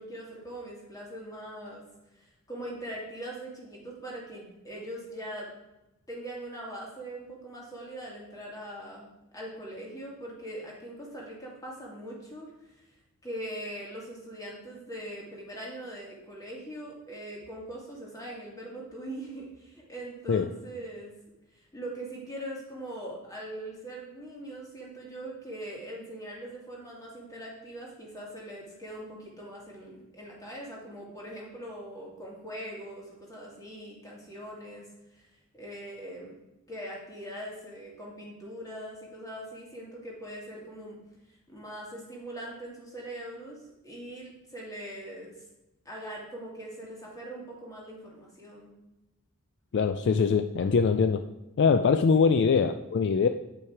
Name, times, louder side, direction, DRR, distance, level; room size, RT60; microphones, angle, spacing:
voice 1, 0.0-1.8 2.1-5.5 6.1-13.0 13.2-21.1 21.5-34.9 35.1-35.2 35.5-36.4 36.7-41.0 41.3-45.3 45.8-48.7 52.1-52.4, right 1 dB, 15° left, -3 dB, 2.2 m, -41 dB
voice 2, 49.7-51.2 51.6-53.3, left 5 dB, 50° left, 9 dB, 0.3 m, -23 dB
9.0 x 5.6 x 4.7 m, 0.95 s
head